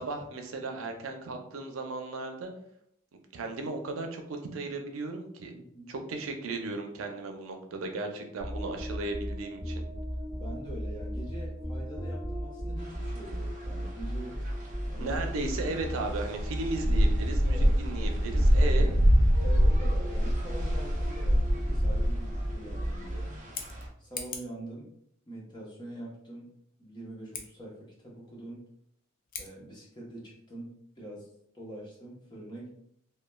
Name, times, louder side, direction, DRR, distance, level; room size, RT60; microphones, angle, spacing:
voice 1, 0.0-2.5 3.3-5.5 5.9-9.8 15.0-18.9, right 2 dB, 90° right, 4 dB, 0.5 m, -36 dB
voice 2, 5.5-5.9 10.4-14.4 14.9-15.1 17.5-17.7 19.4-23.3 24.0-24.8 25.3-26.5 26.8-27.8 28.0-28.6 29.4-31.3 31.5-32.9, right 1 dB, 20° left, -5 dB, 0.8 m, -44 dB
sound 1, 8.4-23.6, equal, 85° left, 0.9 m, -36 dB
sound 2, 12.8-23.9, equal, 40° right, 0.5 m, -27 dB
Scissors, 23.3-24.6 27.2-27.5 29.2-29.5, left 6 dB, 45° left, 0.4 m, -40 dB
3.0 x 2.2 x 2.2 m, 0.71 s
head